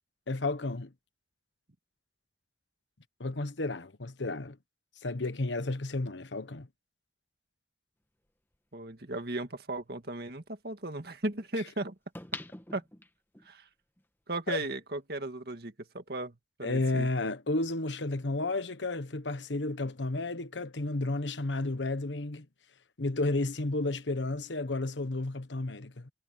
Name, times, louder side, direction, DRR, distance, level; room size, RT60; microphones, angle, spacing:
voice 1, 0.3-0.9 3.2-4.6 5.0-6.7 14.5-14.6 16.6-22.4 23.0-26.1, left 2 dB, 90° left, 1.2 m, -32 dB
sound 1, 8.5-8.6 12.1-13.5 14.0-14.1, left 2 dB, 10° left, 1.3 m, -42 dB
voice 2, 8.7-11.9 12.7-12.8 13.5-13.6 14.3-17.1, right 2 dB, 60° right, 2.0 m, -36 dB
head